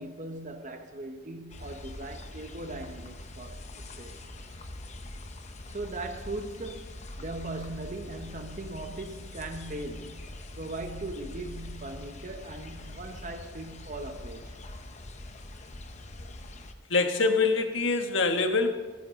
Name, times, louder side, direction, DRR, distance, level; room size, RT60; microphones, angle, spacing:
voice 1, 0.0-4.2 5.7-10.3 10.6-14.6, right 2 dB, 40° right, 1.1 m, -39 dB
sound 1, 1.5-16.7, left 1 dB, 35° left, 0.9 m, -43 dB
voice 2, 16.9-18.7, left 3 dB, 65° left, 1.4 m, -24 dB
26.0 x 9.4 x 3.8 m
head